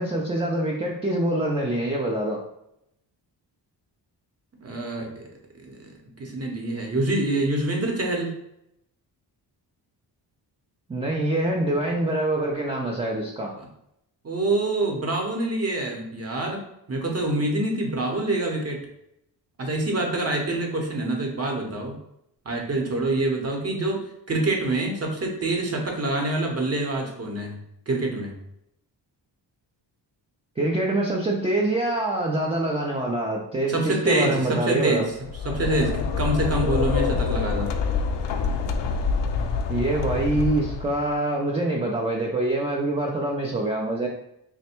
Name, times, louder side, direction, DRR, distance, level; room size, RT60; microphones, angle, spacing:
voice 1, 0.0-2.4 10.9-13.5 30.6-35.0 39.7-44.1, right 1 dB, 15° right, -1 dB, 0.4 m, -25 dB
voice 2, 4.6-5.2 5.6-5.8 6.2-8.3 14.2-16.6 16.9-18.8 19.6-21.9 22.4-27.5 27.9-28.3 33.7-35.1 35.4-37.7, right 2 dB, 35° right, 1 dB, 0.8 m, -26 dB
sound 1, 35.1-41.1, left 5 dB, 70° left, 0.5 m, -26 dB
3.3 x 2.1 x 4.3 m, 0.80 s
wide cardioid pair, 135°, 44 cm